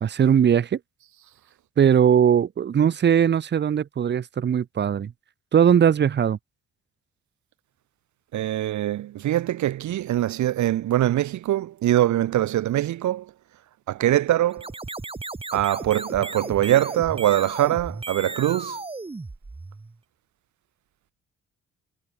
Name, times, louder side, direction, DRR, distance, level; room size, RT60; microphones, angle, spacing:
voice 1, 0.0-0.8 1.8-5.1 5.5-6.4, right 8 dB, 35° right, 0.7 m, -19 dB
voice 2, 8.3-13.2 13.9-14.7 15.5-18.8, right 13 dB, 70° right, 1.2 m, -23 dB
sound 1, 14.5-20.0, right 3 dB, 20° right, 2.5 m, -35 dB
cardioid pair, 90°, 30 cm